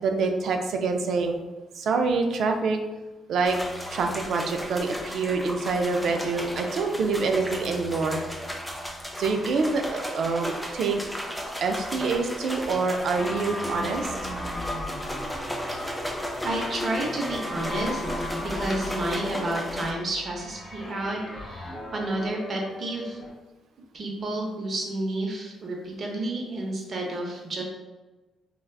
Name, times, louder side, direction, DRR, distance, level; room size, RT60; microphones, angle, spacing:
voice 1, 0.0-1.4 1.8-2.8 3.3-3.6 3.9-8.2 9.2-11.0 11.6-14.1, right 4 dB, 70° right, 4 dB, 0.3 m, -26 dB
sound 1, 3.5-19.9, equal, ahead, 0.4 m, -35 dB
sound 2, 13.1-23.3, left 1 dB, 20° left, 0.9 m, -37 dB
voice 2, 16.4-18.0 18.4-23.2 23.9-27.6, right 1 dB, 45° right, 0 dB, 0.7 m, -30 dB
3.3 x 2.3 x 2.3 m, 1.2 s
cardioid pair, 90°, 0 cm